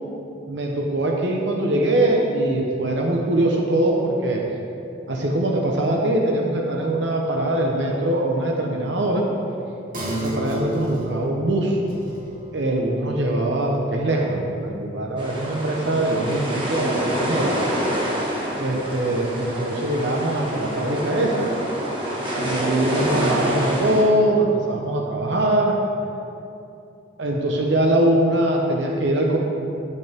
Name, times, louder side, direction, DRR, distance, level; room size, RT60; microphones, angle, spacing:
voice 1, 0.5-4.4 5.1-9.2 10.0-11.8 12.5-17.5 18.6-21.5 22.3-25.8 27.2-29.4, right 1 dB, 70° right, -1 dB, 1.0 m, -22 dB
sound 1, 9.9-17.0 17.3-17.4, right 1 dB, 45° right, 2.1 m, -35 dB
sound 2, 15.2-24.0, equal, 25° right, 1.5 m, -26 dB
15.5 x 5.5 x 3.6 m, 2.7 s
head